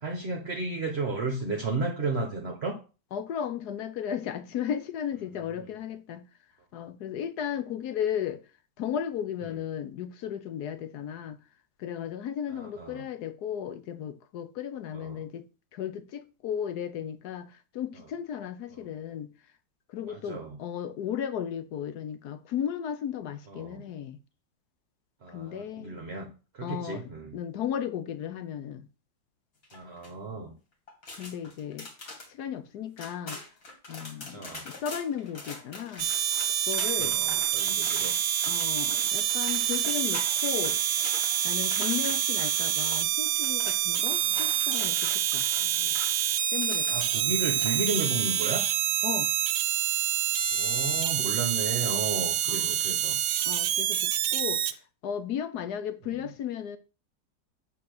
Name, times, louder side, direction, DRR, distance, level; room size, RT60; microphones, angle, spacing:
voice 1, 0.0-2.8 12.5-13.0 14.9-15.2 20.1-20.6 23.5-23.9 25.2-26.3 26.5-27.4 29.7-30.5 34.3-34.7 37.0-38.2 44.2-44.4 45.6-46.0 46.9-48.7 50.6-53.2, right 3 dB, 40° right, 1.2 m, -33 dB
voice 2, 3.1-6.2 6.7-8.4 8.8-11.4 11.8-15.5 15.7-19.3 19.9-24.2 25.3-26.0 26.6-28.9 31.1-31.9 32.3-33.4 33.9-36.1 36.7-37.2 38.4-40.8 41.4-45.5 46.5-47.0 49.0-49.3 52.5-52.7 53.4-56.8, left 9 dB, 65° left, 1.2 m, -35 dB
sound 1, 29.6-30.1 30.9-32.3 32.7-32.8 33.0-47.1 47.4-47.9, left 2 dB, 50° left, 2.4 m, -43 dB
sound 2, 36.0-54.7, right 11 dB, 75° right, 1.2 m, -27 dB
8.3 x 3.8 x 6.6 m
omnidirectional pair, 2.0 m